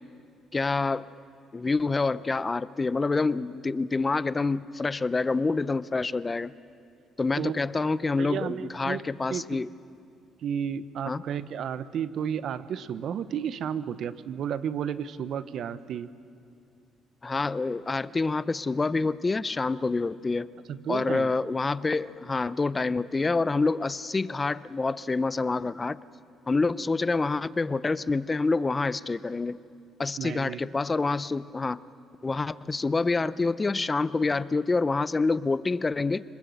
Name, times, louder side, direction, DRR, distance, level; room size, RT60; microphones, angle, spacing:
voice 1, 0.5-1.1 1.5-6.5 7.2-9.7 11.1-11.2 17.2-20.5 20.9-26.0 26.5-29.6 30.0-31.8 32.2-36.2, left 3 dB, 25° left, 17 dB, 0.6 m, -27 dB
voice 2, 8.2-9.0 9.3-9.6 10.4-16.1 20.7-21.3 30.2-30.6, right 8 dB, 65° right, 14 dB, 0.9 m, -32 dB
25.5 x 20.5 x 7.9 m, 2.4 s
supercardioid pair, 75°, 0 cm